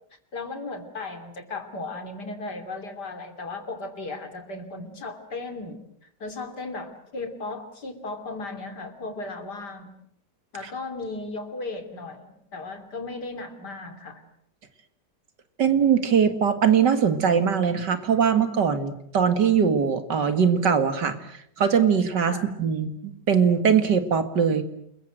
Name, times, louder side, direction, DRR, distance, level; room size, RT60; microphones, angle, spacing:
voice 1, 0.3-5.8 6.2-9.9 10.5-14.2 22.3-22.5, left 3 dB, 70° left, 8 dB, 3.5 m, -36 dB
voice 2, 15.6-21.2 21.6-23.0 23.3-24.6, right 7 dB, 75° right, 10 dB, 2.6 m, -21 dB
29.0 x 21.5 x 7.9 m, 0.70 s
omnidirectional pair, 1.9 m